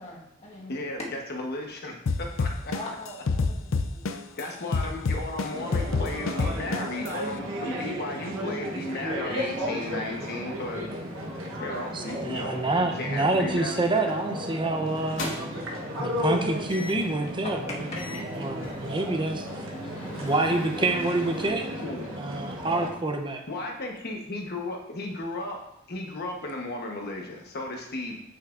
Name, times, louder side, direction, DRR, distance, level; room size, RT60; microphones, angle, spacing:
voice 1, 0.0-0.8 2.7-4.4 20.0-20.2, left 1 dB, 35° left, -4 dB, 1.6 m, -43 dB
voice 2, 0.7-2.7 4.4-10.9 11.6-14.1 21.8-22.1 23.5-25.6 25.9-28.2, left 2 dB, 50° left, 1 dB, 1.1 m, -35 dB
sound 1, 2.1-4.4 4.7-7.1, left 4 dB, 85° left, 0.5 m, -26 dB
sound 2, 5.5-22.9, equal, 70° right, 1.1 m, -34 dB
voice 3, 11.9-15.3 16.0-17.8 18.4-19.5 20.2-21.7 22.2-23.4, right 2 dB, 25° right, 4 dB, 0.7 m, -27 dB
sound 3, 14.1-14.3 14.9-15.7 16.7-17.1 17.6-17.7 18.0-21.5, left 1 dB, 70° left, 1.3 m, -40 dB
8.7 x 5.7 x 2.5 m, 0.81 s
head